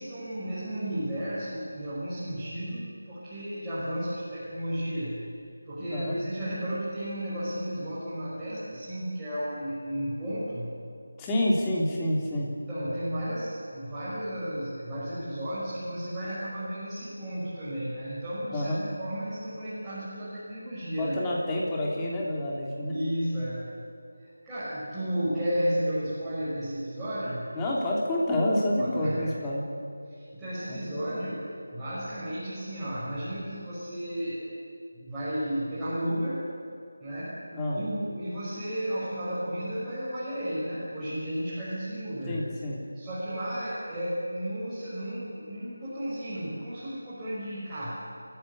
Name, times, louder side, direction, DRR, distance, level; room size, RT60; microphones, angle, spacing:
voice 1, 0.0-5.3 5.7-10.7 12.7-21.2 22.9-23.7 24.4-27.5 28.8-29.3 30.1-34.4 34.9-36.5 37.0-37.4 37.7-42.5 42.9-48.0, equal, 5° right, -15 dB, 5.9 m, -33 dB
voice 2, 11.2-12.5 18.5-18.8 20.8-22.9 27.5-29.7 30.7-31.2 37.5-37.8 42.2-42.8, left 1 dB, 10° left, -4 dB, 3.2 m, -28 dB
28.5 x 15.0 x 8.3 m, 2.5 s
figure-of-eight pair, 165°, 0 cm